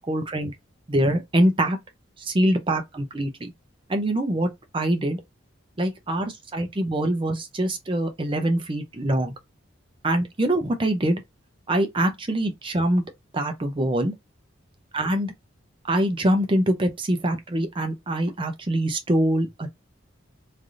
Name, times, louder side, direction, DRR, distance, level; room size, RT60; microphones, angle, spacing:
voice 1, 0.1-0.5 0.9-1.8 2.2-3.5 3.9-4.5 4.7-5.2 5.8-9.3 10.0-11.2 11.7-13.0 13.3-14.1 14.9-15.3 15.9-19.7, right 1 dB, 25° right, 0.5 m, -24 dB
3.3 x 2.4 x 2.5 m
head